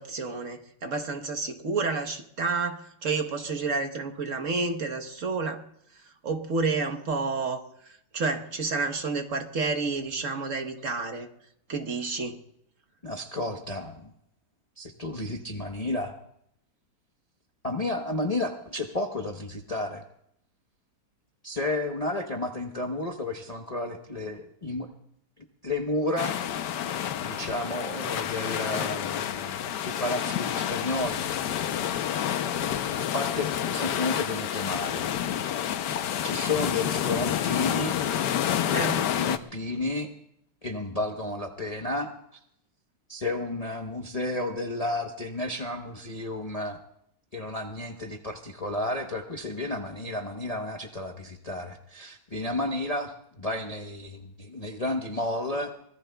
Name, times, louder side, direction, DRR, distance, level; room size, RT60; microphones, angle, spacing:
voice 1, 0.0-5.6 6.2-11.3 11.7-12.4 38.7-39.1, right 4 dB, 50° right, 6 dB, 1.3 m, -30 dB
voice 2, 13.0-14.1 14.8-16.1 17.6-20.0 21.4-24.9 25.6-26.4 27.2-31.3 33.0-35.1 36.2-38.0 39.1-40.1 40.6-42.1 43.1-46.8 47.3-55.7, left 2 dB, 30° left, 2 dB, 0.8 m, -32 dB
sound 1, 26.2-39.4, left 10 dB, 75° left, 1.3 m, -29 dB
24.5 x 21.0 x 2.3 m, 0.73 s
omnidirectional pair, 1.9 m